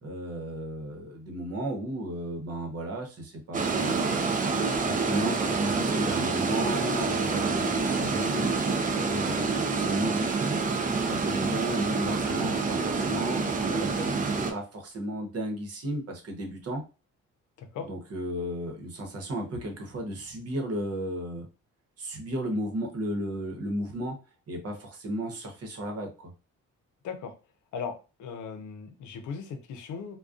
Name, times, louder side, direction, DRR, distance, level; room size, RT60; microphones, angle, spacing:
voice 1, 0.0-8.6 9.0-10.6 11.0-16.8 17.8-21.5 22.0-24.2 24.5-26.1, right 1 dB, 55° right, 2 dB, 0.9 m, -34 dB
sound 1, 3.5-14.5, right 4 dB, 30° right, 0.4 m, -27 dB
voice 2, 28.2-30.2, left 6 dB, 75° left, 6 dB, 0.6 m, -37 dB
2.3 x 2.2 x 2.4 m, 0.31 s
cardioid pair, 90°, 30 cm